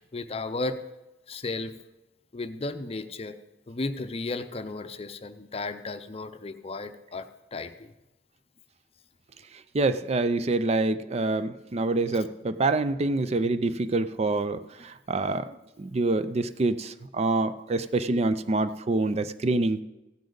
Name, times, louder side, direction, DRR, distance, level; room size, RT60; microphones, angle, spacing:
voice 1, 0.1-0.8 1.3-1.7 2.3-3.4 3.7-7.9, left 3 dB, 35° left, 10 dB, 0.6 m, -34 dB
voice 2, 9.7-19.8, right 2 dB, 35° right, 12 dB, 0.4 m, -26 dB
15.5 x 10.5 x 3.9 m, 0.99 s
head